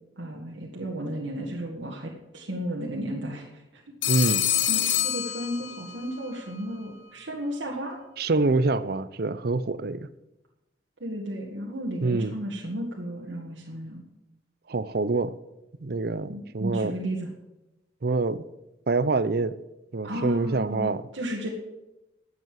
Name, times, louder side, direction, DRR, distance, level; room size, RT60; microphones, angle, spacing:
voice 1, 0.2-3.6 4.2-4.4 4.7-8.0 11.0-14.0 16.3-17.3 20.0-20.9 21.1-21.5, equal, 80° right, -2 dB, 1.9 m, -33 dB
Telephone, 4.0-6.1, left 10 dB, 80° left, 1.1 m, -26 dB
voice 2, 4.1-4.4 8.2-10.1 12.0-12.3 14.7-15.3 15.8-16.9 18.0-18.4 18.9-19.6 19.9-21.1, right 3 dB, 55° right, 16 dB, 0.6 m, -26 dB
12.5 x 8.3 x 7.6 m, 0.96 s
head